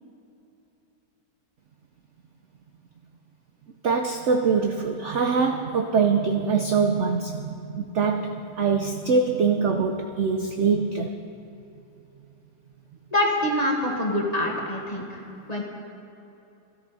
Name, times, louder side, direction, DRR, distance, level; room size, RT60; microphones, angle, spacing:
voice 1, 3.8-11.1, right 5 dB, 60° right, 4 dB, 0.7 m, -23 dB
voice 2, 13.1-15.6, left 1 dB, 20° left, -1 dB, 1.8 m, -25 dB
19.5 x 13.5 x 4.2 m, 2.9 s
omnidirectional pair, 2.0 m